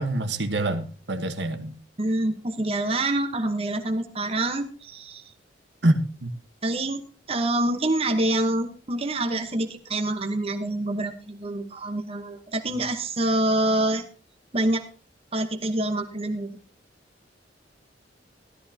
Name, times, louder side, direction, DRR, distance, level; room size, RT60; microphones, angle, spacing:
voice 1, 0.0-1.7 5.8-6.3, right 1 dB, 70° right, 7 dB, 1.2 m, -25 dB
voice 2, 2.0-5.3 6.6-7.0 7.3-14.0 14.5-14.8 15.3-16.6, right 1 dB, 35° right, 6 dB, 1.0 m, -26 dB
14.0 x 13.0 x 2.8 m, 0.39 s
head